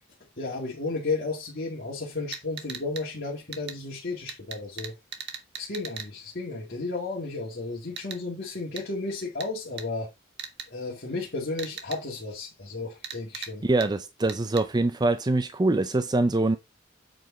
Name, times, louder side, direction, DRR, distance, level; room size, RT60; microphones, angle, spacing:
voice 1, 0.4-5.0 5.6-10.1 10.7-13.7, left 3 dB, 55° left, 2.0 m, -33 dB
sound 1, 2.3-3.0 3.5-3.8 4.3-6.1 8.0-8.2 8.8-8.9 9.4-9.5 9.8-9.9 10.4-10.7 11.6-12.0 13.0-13.5 13.8-13.9 14.3-14.6, right 7 dB, 60° right, 1.5 m, -38 dB
voice 2, 13.6-16.6, right 2 dB, 20° right, 0.5 m, -24 dB
7.9 x 4.8 x 4.3 m
head